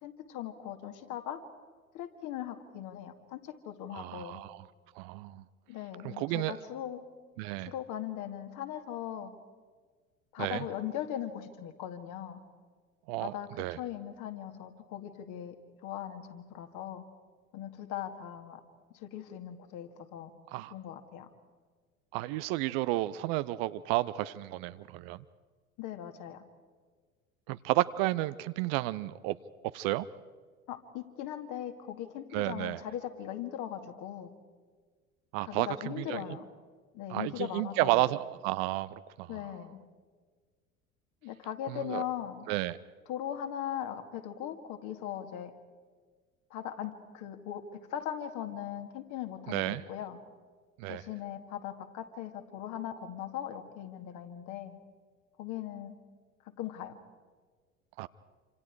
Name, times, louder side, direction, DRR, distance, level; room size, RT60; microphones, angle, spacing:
voice 1, 0.0-1.4 1.9-4.4 5.7-7.0 7.7-9.3 10.3-12.4 13.2-13.5 13.8-15.6 15.8-17.0 17.5-18.6 18.9-20.3 20.7-21.3 25.8-26.4 30.7-34.3 35.4-36.4 36.9-38.1 39.3-39.8 41.2-42.4 43.1-45.5 46.5-50.2 50.9-54.7 55.4-55.9 56.6-57.0, left 10 dB, 45° left, 6 dB, 2.2 m, -39 dB
voice 2, 3.9-4.6 5.0-5.4 6.0-6.5 7.4-7.7 10.4-10.6 13.1-13.8 20.5-20.7 22.1-25.2 27.5-29.4 29.7-30.1 32.3-32.8 35.3-36.2 37.1-39.3 41.7-42.0 42.5-42.8 49.5-49.8 50.8-51.0 58.0-58.1, right 17 dB, 45° right, 15 dB, 0.7 m, -32 dB
27.5 x 26.5 x 4.7 m, 1.5 s
figure-of-eight pair, 70°, 42 cm